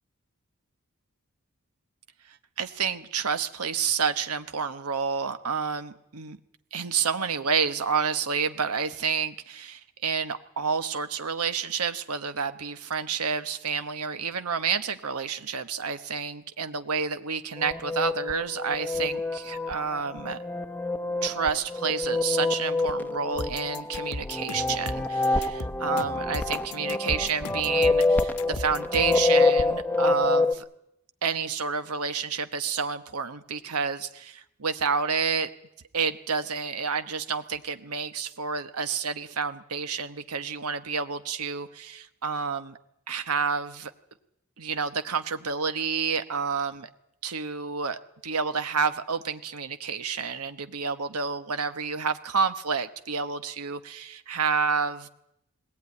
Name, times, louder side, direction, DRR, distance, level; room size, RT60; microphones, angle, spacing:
voice 1, 2.6-6.4 6.7-20.4 21.2-30.6 31.2-35.5 35.9-42.8 43.1-43.9 44.6-46.9 47.2-55.1, right 5 dB, 80° right, 10 dB, 1.1 m, -29 dB
sound 1, 17.6-30.5, left 3 dB, 10° left, 0.8 m, -26 dB
sound 2, 23.4-29.3, left 2 dB, 80° left, 1.1 m, -37 dB
20.5 x 18.0 x 9.6 m, 0.80 s
head